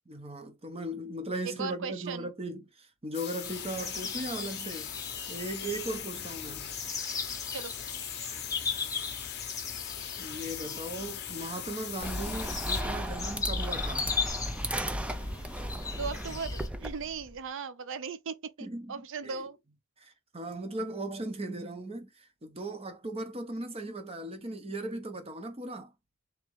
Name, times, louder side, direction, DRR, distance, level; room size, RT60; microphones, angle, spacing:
voice 1, 0.1-4.9 5.3-6.8 10.2-14.1 18.6-19.4 20.0-25.9, right 1 dB, 25° right, 0.8 m, -38 dB
voice 2, 1.4-2.3 7.5-8.0 15.9-19.6, right 5 dB, 60° right, 0.5 m, -38 dB
sound 1, 3.1-12.8, left 10 dB, 50° left, 0.7 m, -40 dB
sound 2, 3.4-16.7, left 5 dB, 15° left, 0.7 m, -38 dB
sound 3, 12.0-17.4, equal, 5° right, 0.4 m, -35 dB
3.6 x 3.1 x 3.1 m
head